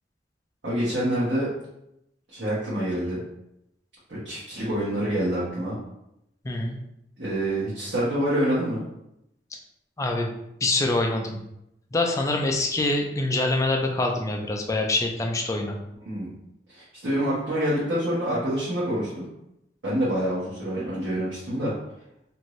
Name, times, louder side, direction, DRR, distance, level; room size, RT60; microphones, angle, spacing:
voice 1, 0.6-1.5 2.3-3.2 4.1-5.8 7.2-8.8 16.0-16.3 16.7-19.2 19.8-21.7, equal, 85° right, -10 dB, 1.0 m, -26 dB
voice 2, 6.4-6.8 10.0-10.3 10.6-11.4 11.9-15.8, left 2 dB, 20° left, 2 dB, 0.3 m, -25 dB
2.6 x 2.5 x 3.0 m, 0.83 s
head